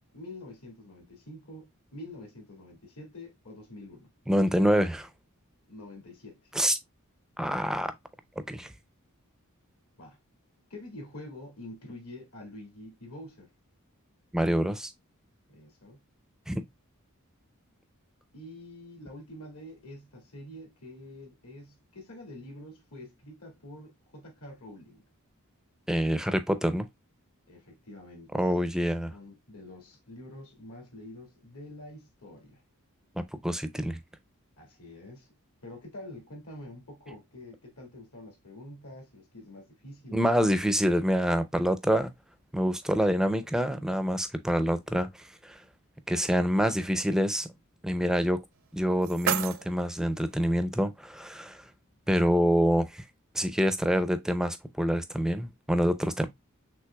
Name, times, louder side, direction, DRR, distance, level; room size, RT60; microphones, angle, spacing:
voice 1, 0.0-4.1 5.7-6.5 10.0-10.2 10.7-13.5 15.5-16.0 18.3-25.0 27.5-28.3 29.1-32.6 34.6-35.3 35.6-40.5, left 1 dB, 75° left, 2.1 m, -46 dB
voice 2, 4.3-5.1 6.5-6.8 7.4-7.9 8.5-8.7 14.3-14.9 16.5-16.6 25.9-26.9 28.3-29.1 33.2-34.0 40.1-42.1 42.5-45.6 46.1-47.5 47.8-48.4 48.7-51.6 52.1-53.0 53.3-56.3, equal, 5° right, 0.4 m, -26 dB
sound 1, 48.5-50.5, right 8 dB, 60° right, 0.5 m, -34 dB
5.9 x 3.2 x 2.2 m
head